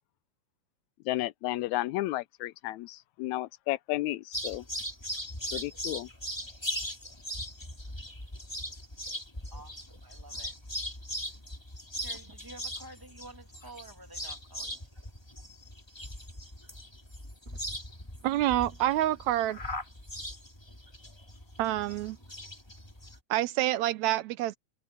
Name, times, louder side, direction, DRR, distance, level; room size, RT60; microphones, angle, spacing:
voice 1, 1.1-4.6 5.5-6.1, left 17 dB, 80° left, 1.7 m, -33 dB
sound 1, 4.3-23.2, equal, 10° left, 2.3 m, -40 dB
voice 2, 9.5-10.6 11.5-15.1, right 2 dB, 10° right, 1.9 m, -51 dB
voice 3, 18.2-19.6 21.6-22.2 23.3-24.6, right 14 dB, 75° right, 1.8 m, -27 dB
omnidirectional pair, 3.7 m